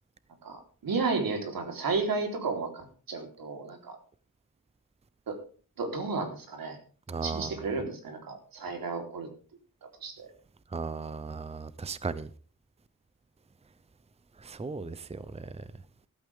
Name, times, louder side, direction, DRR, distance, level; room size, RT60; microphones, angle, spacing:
voice 1, 0.4-4.0 5.3-5.4 5.8-6.8 7.2-9.3 10.0-10.3, right 4 dB, 90° right, 4.0 m, -33 dB
voice 2, 7.1-7.5 10.7-12.3 14.4-15.6, right 4 dB, 20° right, 0.7 m, -36 dB
15.0 x 14.0 x 3.6 m
wide cardioid pair, 135°, 34 cm